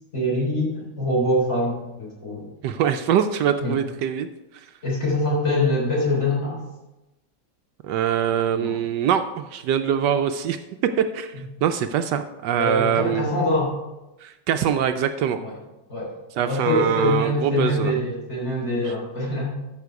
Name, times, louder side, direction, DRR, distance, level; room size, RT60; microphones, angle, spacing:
voice 1, 0.1-2.5 3.6-3.7 4.8-6.6 8.6-8.7 12.6-13.7 15.4-15.5 15.9-16.1 16.5-19.5, left 1 dB, 40° left, -5 dB, 4.1 m, -24 dB
voice 2, 2.6-4.3 4.5-4.7 7.8-10.6 10.8-11.3 11.6-13.3 14.2-15.4 16.4-17.9 18.8-18.9, right 9 dB, 75° right, 8 dB, 1.2 m, -23 dB
13.0 x 5.7 x 4.7 m, 1.0 s
omnidirectional pair, 1.9 m